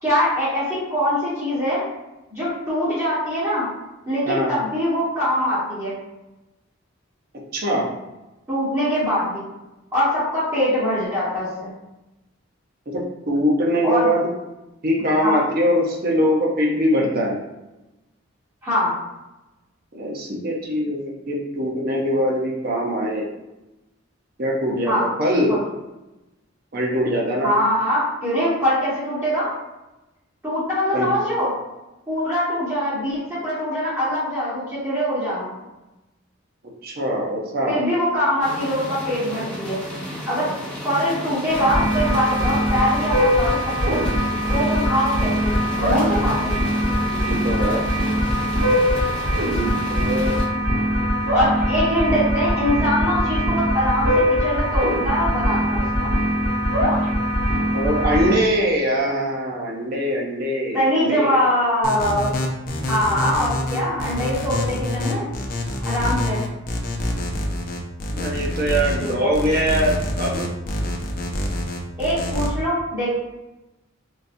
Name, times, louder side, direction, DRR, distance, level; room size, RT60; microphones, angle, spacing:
voice 1, 0.0-1.8 2.3-3.7 4.1-6.0 8.5-9.5 9.9-11.7 13.8-14.1 15.2-15.4 18.6-18.9 24.9-25.0 25.5-25.6 27.4-29.5 30.4-31.5 32.1-35.6 37.7-39.8 40.3-40.5 40.8-44.0 44.5-46.5 51.3-56.1 60.7-62.3 62.9-65.3 65.8-66.4 69.0-69.3 72.0-73.1, equal, 15° right, -11 dB, 1.2 m, -23 dB
voice 2, 7.5-7.9 12.9-14.3 14.8-17.4 19.9-21.0 21.3-23.3 24.4-25.5 26.7-27.5 30.9-31.1 36.8-37.8 47.1-47.8 49.4-50.4 57.7-61.4 68.1-70.5, equal, 50° right, -1 dB, 0.6 m, -22 dB
sound 1, 38.4-50.5, equal, 5° left, 0.7 m, -33 dB
sound 2, 41.5-58.3, equal, 70° right, 1.2 m, -21 dB
sound 3, 61.8-72.5, left 1 dB, 45° left, 0.5 m, -26 dB
3.9 x 2.3 x 2.5 m, 1.0 s
head